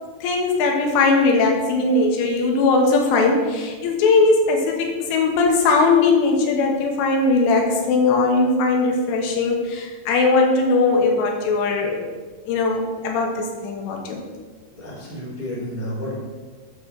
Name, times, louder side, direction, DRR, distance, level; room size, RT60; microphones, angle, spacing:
voice 1, 0.2-12.1 12.5-14.2, left 3 dB, 80° left, 2 dB, 3.7 m, -19 dB
voice 2, 14.7-16.1, equal, 15° right, -6 dB, 1.7 m, -31 dB
8.7 x 6.6 x 6.2 m, 1.4 s
omnidirectional pair, 5.6 m